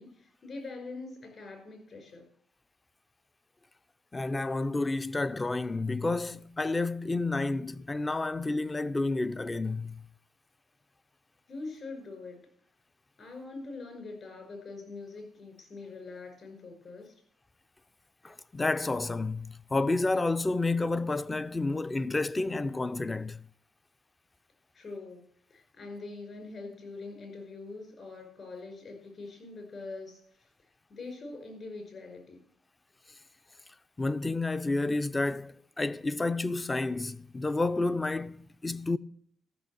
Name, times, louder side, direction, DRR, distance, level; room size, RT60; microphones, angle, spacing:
voice 1, 0.0-2.2 11.5-12.4 13.2-17.1 24.7-25.2 25.5-30.2 30.9-32.4, left 3 dB, 50° left, 5.3 m, -43 dB
voice 2, 4.1-10.0 18.2-23.4 34.0-39.0, left 2 dB, 20° left, 0.5 m, -30 dB
13.5 x 6.3 x 7.6 m
cardioid pair, 90°, 0 cm